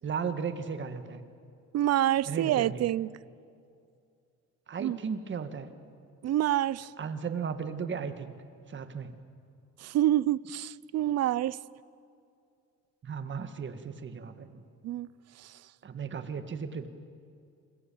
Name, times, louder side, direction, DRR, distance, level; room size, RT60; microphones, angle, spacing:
voice 1, 0.0-1.2 2.3-2.8 4.7-5.7 7.0-8.3 8.7-9.2 13.0-14.6 15.8-16.9, right 6 dB, 40° right, 9 dB, 1.8 m, -35 dB
voice 2, 1.7-3.1 4.8-5.0 6.2-6.9 9.8-11.6 14.8-15.1 15.4-15.5, right 13 dB, 60° right, 21 dB, 0.6 m, -27 dB
28.0 x 22.0 x 8.7 m, 2.4 s
cardioid pair, 130°, 29 cm